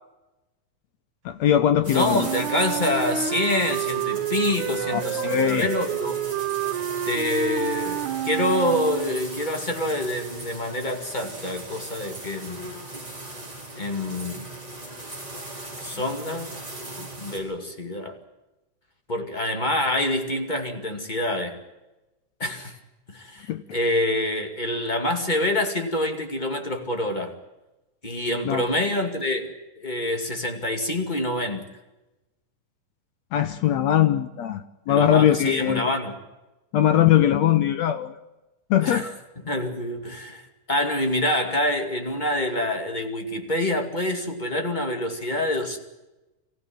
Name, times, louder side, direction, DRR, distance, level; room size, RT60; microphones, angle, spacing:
voice 1, 1.3-2.3 4.9-5.7 23.5-23.6 28.5-28.6 33.3-35.9 36.7-38.2 38.7-39.1, left 11 dB, 70° left, 10 dB, 1.9 m, -21 dB
sound 1, 1.8-17.4, right 2 dB, 10° right, 5.4 m, -38 dB
voice 2, 1.9-6.2 7.1-12.7 13.7-14.5 15.8-16.6 17.0-18.2 19.1-21.6 22.4-22.8 23.1-27.4 28.0-31.6 34.9-36.2 38.8-39.1 39.4-45.8, left 1 dB, 15° left, 4 dB, 1.9 m, -26 dB
Wind instrument woodwind instrument, 2.0-9.3, right 10 dB, 75° right, 2.3 m, -29 dB
25.0 x 15.5 x 9.1 m, 1.0 s
omnidirectional pair, 3.7 m